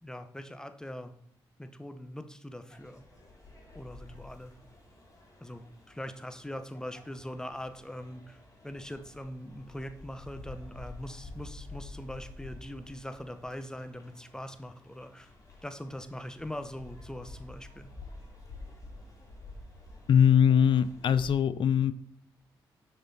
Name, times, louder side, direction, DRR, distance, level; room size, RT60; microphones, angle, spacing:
voice 1, 0.0-1.1 1.6-3.0 3.7-4.5 5.4-15.3 15.6-17.9, left 1 dB, 5° left, 9 dB, 0.8 m, -42 dB
sound 1, 2.7-21.4, left 2 dB, 35° left, 2.4 m, -50 dB
voice 2, 20.1-21.9, left 8 dB, 60° left, 16 dB, 0.4 m, -22 dB
6.4 x 4.3 x 3.9 m, 0.68 s
supercardioid pair, 45°, 10 cm